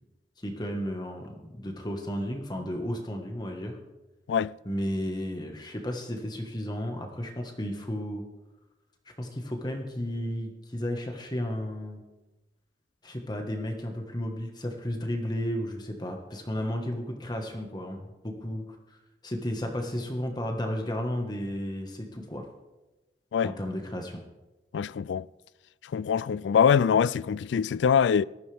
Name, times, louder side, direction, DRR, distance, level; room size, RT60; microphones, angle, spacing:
voice 1, 0.4-3.8 4.6-8.3 9.2-12.0 13.0-22.4 23.4-24.2, equal, 25° left, 1.5 m, -33 dB
voice 2, 24.7-25.3 25.9-28.3, left 7 dB, 90° left, 0.3 m, -23 dB
19.0 x 13.5 x 3.5 m
head